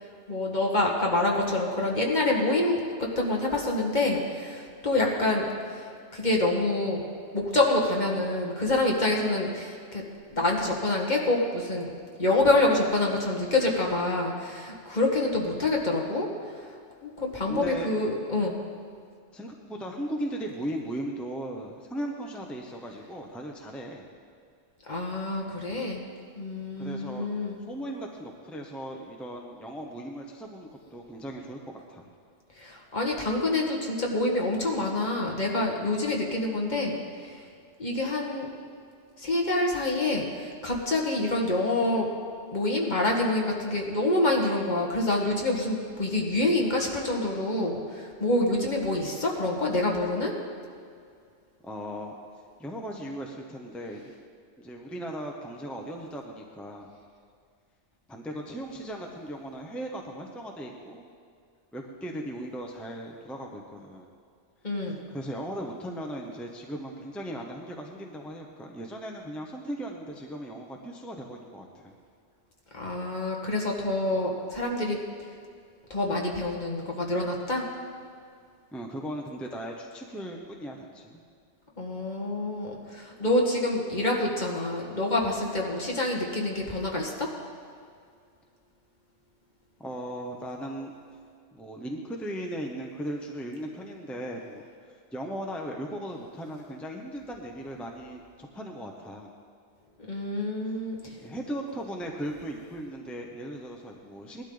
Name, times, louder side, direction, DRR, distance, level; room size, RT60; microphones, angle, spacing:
voice 1, 0.3-5.5 6.1-7.0 7.3-10.0 10.3-11.9 12.2-16.3 17.0-18.5 24.9-26.0 26.3-27.6 32.6-37.0 37.2-37.4 37.8-38.5 39.2-42.1 42.5-50.3 64.6-65.0 72.7-75.0 75.9-77.6 81.8-87.3 100.1-101.0, left 2 dB, 40° left, -1 dB, 1.8 m, -27 dB
voice 2, 17.5-18.0 19.3-24.1 26.8-27.4 27.7-31.6 31.9-32.1 51.6-52.1 52.6-54.1 54.6-56.9 58.1-61.1 61.7-64.1 64.8-71.9 78.7-81.2 89.8-90.9 91.5-99.3 101.2-104.4, right 1 dB, ahead, 1 dB, 0.9 m, -37 dB
19.0 x 12.0 x 3.9 m, 2.2 s
omnidirectional pair, 1.2 m